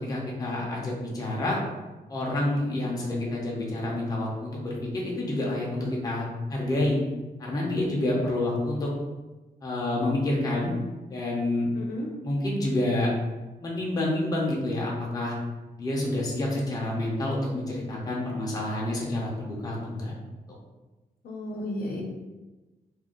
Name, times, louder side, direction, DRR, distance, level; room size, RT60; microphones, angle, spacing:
voice 1, 0.0-1.6 2.1-7.0 7.4-8.9 9.6-10.8 11.1-11.7 12.2-13.1 13.6-15.3 15.8-20.1, left 1 dB, 25° left, -4 dB, 0.5 m, -28 dB
voice 2, 11.7-12.1 21.2-22.0, left 1 dB, 85° left, -1 dB, 0.7 m, -33 dB
2.5 x 2.3 x 3.5 m, 1.2 s
wide cardioid pair, 175°, 15 cm